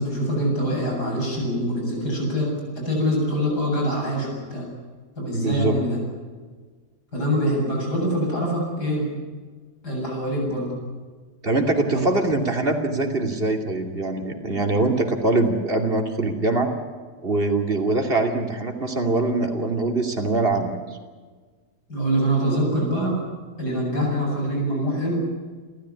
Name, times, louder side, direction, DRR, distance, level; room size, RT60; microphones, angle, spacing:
voice 1, 0.0-4.7 5.2-6.0 7.1-9.1 9.8-10.7 11.9-12.0 21.9-23.2 23.6-25.2, equal, 75° left, -1 dB, 8.6 m, -24 dB
voice 2, 5.3-5.8 11.4-16.7 17.2-20.8, right 2 dB, 35° right, 3 dB, 3.0 m, -23 dB
30.0 x 14.0 x 9.9 m, 1.5 s
omnidirectional pair, 1.8 m